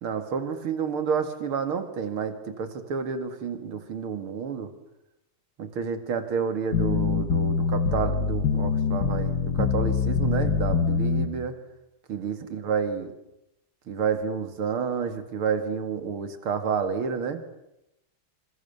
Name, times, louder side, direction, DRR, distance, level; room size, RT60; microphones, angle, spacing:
voice 1, 0.0-4.7 5.6-11.6 12.1-13.1 13.9-17.4, right 6 dB, 75° right, 8 dB, 3.0 m, -29 dB
sound 1, 6.7-11.3, left 6 dB, 55° left, 2.4 m, -24 dB
27.5 x 26.0 x 7.1 m, 0.90 s
omnidirectional pair, 2.4 m